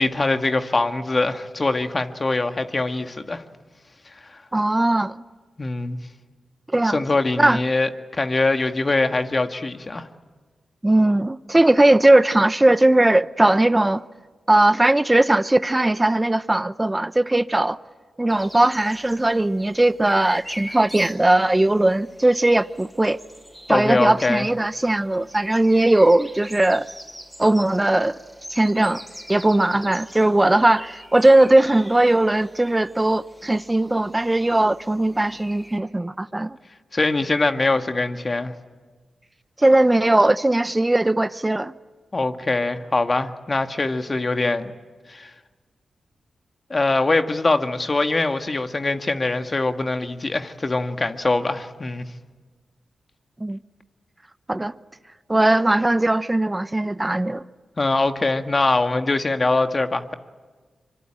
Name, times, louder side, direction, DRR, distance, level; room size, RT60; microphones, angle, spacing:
voice 1, 0.0-3.4 4.3-4.4 5.6-6.0 6.9-10.1 23.7-24.5 36.9-38.5 42.1-44.7 45.1-45.3 46.7-52.0 57.8-60.1, left 2 dB, 40° left, 1.8 m, -23 dB
voice 2, 4.5-5.2 6.7-7.0 7.4-7.6 10.8-14.0 14.5-17.8 18.2-23.2 23.7-26.9 27.4-28.1 28.5-29.0 29.3-36.6 39.6-41.7 53.4-53.6 54.5-54.7 55.3-57.4, right 1 dB, 20° right, 0.8 m, -19 dB
sound 1, 18.3-35.8, equal, ahead, 6.3 m, -43 dB
25.0 x 24.0 x 8.9 m
supercardioid pair, 40°, 0 cm